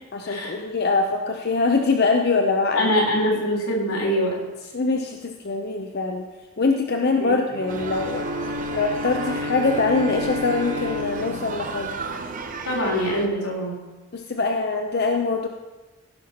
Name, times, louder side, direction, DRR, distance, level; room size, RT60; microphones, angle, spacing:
voice 1, 0.1-3.0 4.7-6.3 6.6-8.2 8.7-11.9 14.1-15.5, left 3 dB, 45° left, 3 dB, 0.7 m, -23 dB
voice 2, 2.8-4.4 7.2-7.3 12.7-13.8, equal, 85° left, -2 dB, 3.6 m, -23 dB
Bowed string instrument, 7.5-12.7, left 2 dB, 90° right, 1.1 m, -32 dB
sound 1, 7.7-13.3, right 3 dB, 35° right, 0.9 m, -34 dB
16.0 x 5.5 x 5.9 m, 1.2 s
head